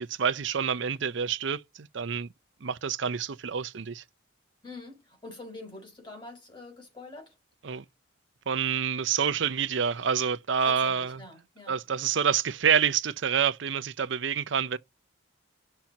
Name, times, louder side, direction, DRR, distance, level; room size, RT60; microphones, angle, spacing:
voice 1, 0.0-2.3 2.6-4.0 7.6-7.8 8.5-11.2 11.7-14.8, right 7 dB, 65° right, 0.6 m, -27 dB
voice 2, 4.6-7.3 10.6-11.8, left 2 dB, 25° left, 4.0 m, -45 dB
5.8 x 4.4 x 5.3 m
head